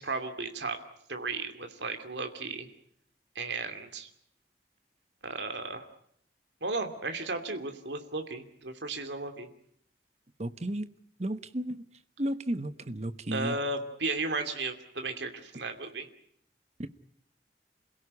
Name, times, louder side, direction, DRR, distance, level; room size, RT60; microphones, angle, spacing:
voice 1, 0.0-0.8 1.1-2.7 3.3-4.1 5.2-5.8 6.6-9.5 13.3-16.1, right 3 dB, 80° right, 6 dB, 2.8 m, -34 dB
voice 2, 10.4-10.9 11.2-11.8 12.2-13.6 16.8-16.9, right 1 dB, 40° right, 11 dB, 1.1 m, -33 dB
28.0 x 16.5 x 9.8 m, 0.69 s
head